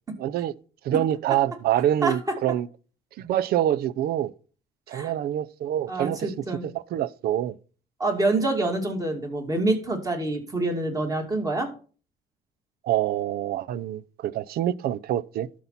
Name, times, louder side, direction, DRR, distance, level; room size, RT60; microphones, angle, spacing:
voice 1, 0.2-0.5 0.8-2.7 3.2-4.3 4.9-6.3 6.7-7.6 12.8-15.5, right 11 dB, 65° right, 0.5 m, -26 dB
voice 2, 5.9-6.6 8.0-11.7, right 2 dB, 20° right, 2.6 m, -26 dB
12.0 x 4.2 x 5.8 m
cardioid pair, 110°, 17 cm